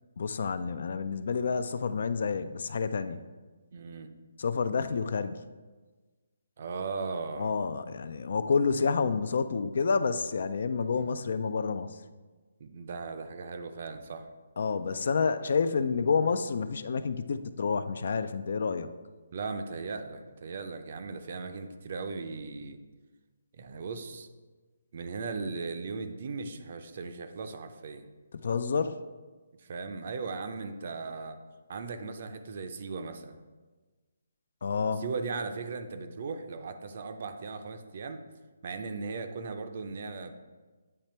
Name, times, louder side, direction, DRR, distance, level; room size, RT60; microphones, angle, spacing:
voice 1, 0.2-3.2 4.4-5.4 7.4-11.9 14.6-18.9 28.4-29.0 34.6-35.0, left 5 dB, 60° left, 12 dB, 0.3 m, -29 dB
voice 2, 3.7-4.1 6.6-7.5 10.9-11.2 12.6-14.3 19.3-22.8 23.5-24.3 24.9-28.0 29.6-31.4 31.7-33.4 35.0-38.2 38.6-40.3, right 4 dB, 45° right, 8 dB, 0.5 m, -37 dB
8.7 x 3.3 x 4.4 m, 1.3 s
hypercardioid pair, 165°, 0 cm